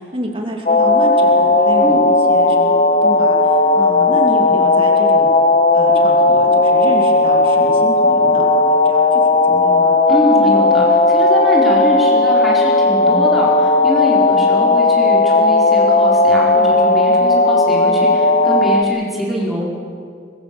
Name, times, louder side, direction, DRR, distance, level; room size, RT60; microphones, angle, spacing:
voice 1, 0.0-5.3 5.7-10.0, equal, 30° right, 1 dB, 2.8 m, -28 dB
sound 1, 0.7-18.8, left 2 dB, 35° left, 0.9 m, -14 dB
voice 2, 10.1-19.6, equal, ahead, -6 dB, 4.9 m, -23 dB
24.0 x 21.5 x 7.1 m, 2.3 s
head